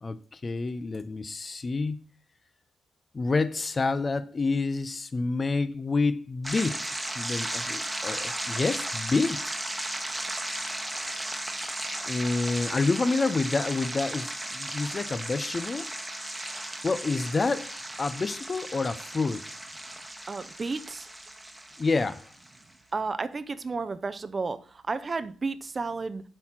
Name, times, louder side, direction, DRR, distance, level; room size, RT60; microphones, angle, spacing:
voice 1, 0.0-2.1 3.1-9.5 12.0-15.9 16.8-19.5 21.8-22.3, left 3 dB, 35° left, 0.5 m, -28 dB
sound 1, 6.4-22.6, right 1 dB, 10° right, 1.2 m, -35 dB
voice 2, 20.3-21.1 22.9-26.2, right 4 dB, 35° right, 0.7 m, -32 dB
8.0 x 4.2 x 6.0 m
cardioid pair, 85°, 0 cm